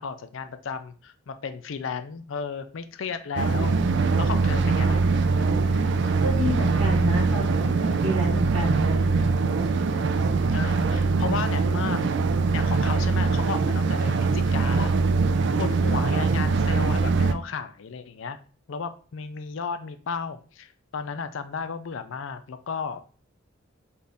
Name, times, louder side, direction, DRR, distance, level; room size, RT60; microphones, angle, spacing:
voice 1, 0.0-3.8 4.2-5.1 5.4-5.5 10.5-12.0 12.5-14.9 15.6-18.4 18.7-23.0, left 5 dB, 70° left, 10 dB, 0.4 m, -34 dB
sound 1, 3.4-17.3, right 4 dB, 55° right, 0.3 m, -22 dB
voice 2, 6.2-9.1, equal, 80° right, -2 dB, 1.5 m, -28 dB
4.1 x 2.6 x 3.4 m, 0.39 s
head